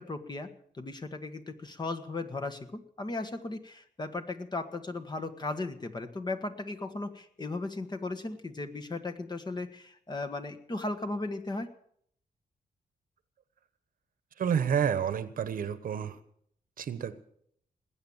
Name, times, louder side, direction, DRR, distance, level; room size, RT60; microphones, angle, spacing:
voice 1, 0.0-11.7, left 2 dB, 30° left, 8 dB, 1.5 m, -36 dB
voice 2, 14.4-16.2 16.8-17.2, right 8 dB, 70° right, 13 dB, 1.1 m, -29 dB
19.5 x 8.8 x 7.2 m, 0.68 s
cardioid pair, 110°, 15 cm